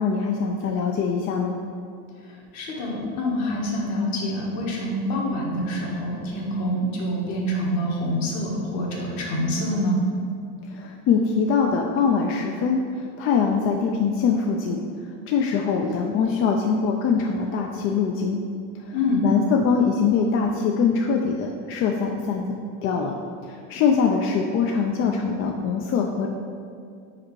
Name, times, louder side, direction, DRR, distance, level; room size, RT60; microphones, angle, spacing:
voice 1, 0.0-1.6 10.7-12.8 13.2-14.8 15.3-18.4 18.9-19.0 19.2-22.5 22.8-23.2 23.4-26.3, left 5 dB, 45° left, 1 dB, 0.4 m, -23 dB
voice 2, 2.5-10.0 18.9-19.3, left 1 dB, 60° left, -3 dB, 1.5 m, -26 dB
4.9 x 4.2 x 4.7 m, 2.3 s
cardioid pair, 140°, 31 cm